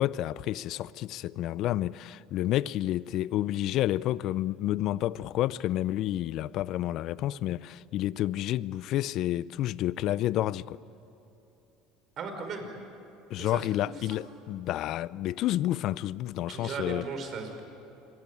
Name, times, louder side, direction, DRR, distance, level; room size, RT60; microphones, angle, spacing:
voice 1, 0.0-10.8 13.3-17.1, left 14 dB, 60° left, 0.6 m, -30 dB
voice 2, 12.2-12.7 13.4-13.9 16.5-17.6, right 4 dB, 45° right, 5.2 m, -37 dB
27.5 x 23.0 x 8.5 m
supercardioid pair, 115°, 0 cm